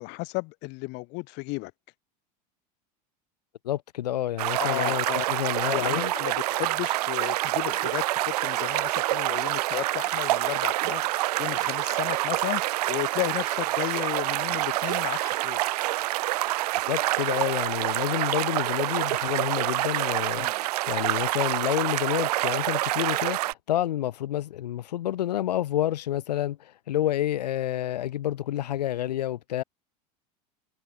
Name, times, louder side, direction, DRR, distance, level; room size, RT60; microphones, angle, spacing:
voice 1, 0.0-1.7 4.6-5.3 5.7-15.8 20.4-20.6, left 27 dB, 60° left, 6.4 m, -34 dB
voice 2, 3.6-6.1 16.9-20.5 20.9-29.6, left 12 dB, 85° left, 2.7 m, -29 dB
sound 1, 4.4-23.5, right 17 dB, 75° right, 2.9 m, -27 dB
hypercardioid pair, 95°, 20 cm